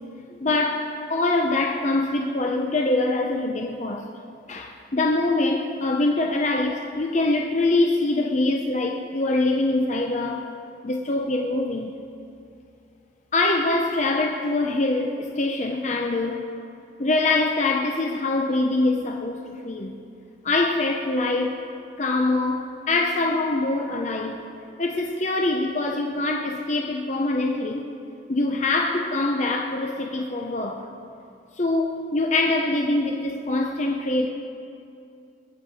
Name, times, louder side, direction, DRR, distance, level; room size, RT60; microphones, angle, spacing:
voice 1, 0.3-4.1 4.5-10.5 10.8-12.0 13.3-16.4 17.0-20.0 20.4-21.5 22.0-24.4 24.8-27.8 28.3-30.9 31.6-34.3, left 2 dB, 40° left, 0.7 m, -24 dB
21.0 x 8.6 x 4.8 m
head